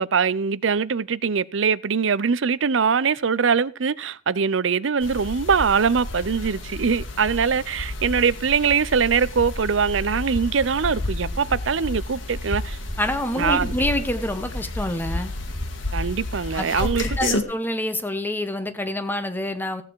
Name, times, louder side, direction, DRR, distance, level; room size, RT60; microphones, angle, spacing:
voice 1, 0.0-12.8 13.4-13.7 15.9-17.4, right 6 dB, 80° right, 0.6 m, -22 dB
sound 1, 5.0-17.4, left 2 dB, 80° left, 2.0 m, -31 dB
voice 2, 13.0-15.3 16.5-19.8, left 1 dB, 10° left, 1.0 m, -27 dB
15.5 x 8.3 x 4.6 m
head